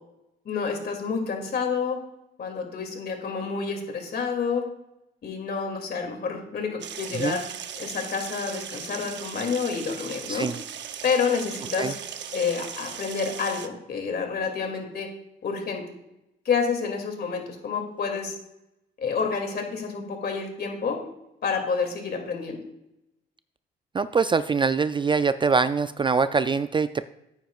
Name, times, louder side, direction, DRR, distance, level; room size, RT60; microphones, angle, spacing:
voice 1, 0.4-2.0 2.4-4.6 5.2-7.4 7.8-10.5 11.0-12.0 12.3-15.1 15.4-15.8 16.4-18.3 19.0-21.0 21.4-22.6, left 5 dB, 55° left, 3 dB, 2.6 m, -28 dB
sound 1, 6.8-13.7, right 9 dB, 65° right, 0.8 m, -38 dB
voice 2, 23.9-27.1, right 5 dB, 25° right, 12 dB, 0.3 m, -23 dB
13.5 x 9.1 x 2.4 m, 0.86 s
cardioid pair, 90°, 20 cm